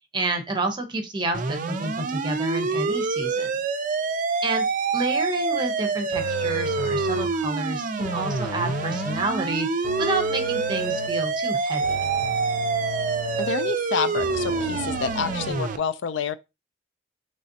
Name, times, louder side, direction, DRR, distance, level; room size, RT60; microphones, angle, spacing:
voice 1, 0.1-3.5 4.4-4.7 4.9-9.7 10.0-12.0, right 2 dB, 25° right, 0.8 m, -29 dB
sound 1, 1.3-15.8, right 4 dB, 45° right, 0.5 m, -26 dB
sound 2, 6.1-7.5 8.0-9.3 9.8-11.3 11.8-13.7 14.2-15.5, left 1 dB, 60° left, 1.1 m, -35 dB
voice 2, 13.4-16.3, left 6 dB, 80° left, 0.4 m, -28 dB
4.0 x 3.3 x 2.7 m
head